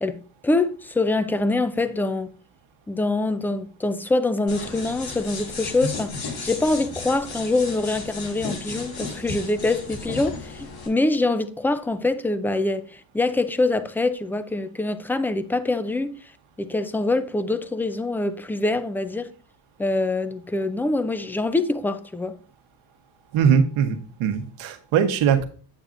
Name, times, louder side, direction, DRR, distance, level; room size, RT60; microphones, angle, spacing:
voice 1, 0.0-2.3 2.9-6.1 6.4-16.1 16.6-19.3 19.8-22.4, left 2 dB, 5° left, 0.4 m, -24 dB
sound 1, 4.5-10.9, left 4 dB, 60° left, 4.6 m, -34 dB
voice 2, 23.3-25.4, right 7 dB, 75° right, 1.3 m, -21 dB
8.9 x 8.2 x 2.6 m
cardioid pair, 130°, 48 cm